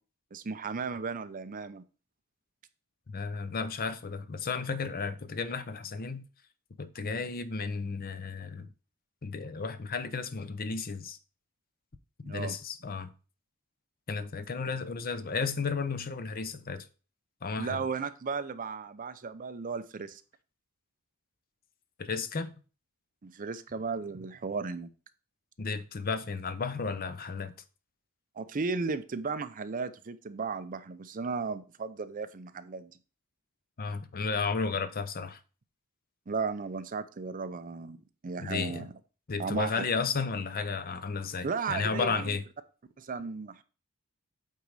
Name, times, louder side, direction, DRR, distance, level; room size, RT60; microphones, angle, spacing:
voice 1, 0.3-1.8 7.0-7.2 12.2-12.6 17.6-20.2 23.2-24.9 28.4-32.9 36.3-38.0 38.2-38.9 39.4-39.8 41.4-42.4 43.0-43.6, right 4 dB, 40° right, 0.5 m, -35 dB
voice 2, 3.1-6.2 6.8-8.7 9.2-11.2 12.3-13.1 14.1-16.9 17.4-17.8 22.0-22.5 25.6-27.5 33.8-35.4 38.4-38.9 39.3-42.4, left 4 dB, 40° left, 0.6 m, -33 dB
8.3 x 3.9 x 4.7 m
head